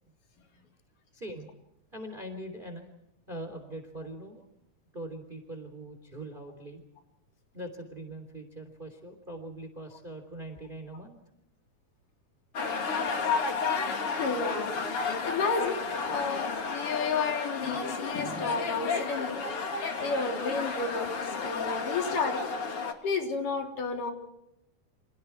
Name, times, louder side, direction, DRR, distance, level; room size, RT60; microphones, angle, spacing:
voice 1, 1.1-1.5 1.9-2.9 3.3-4.4 4.9-6.8 7.5-11.2, right 1 dB, 15° right, 7 dB, 3.2 m, -42 dB
sound 1, 12.5-22.9, left 5 dB, 45° left, 3.2 m, -32 dB
voice 2, 14.1-19.4 19.7-21.1 21.4-22.5 23.0-24.1, left 4 dB, 80° left, 3 dB, 5.1 m, -32 dB
30.0 x 27.0 x 4.6 m, 0.83 s
omnidirectional pair, 3.8 m